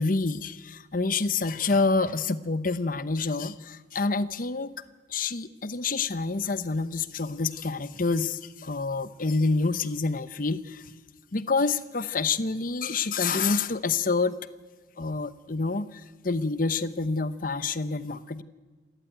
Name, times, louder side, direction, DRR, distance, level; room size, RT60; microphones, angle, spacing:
voice 1, 0.0-4.8 5.1-10.9 11.3-14.4 15.0-18.4, left 4 dB, 50° left, 14 dB, 0.9 m, -27 dB
28.5 x 13.5 x 9.3 m, 1.4 s
head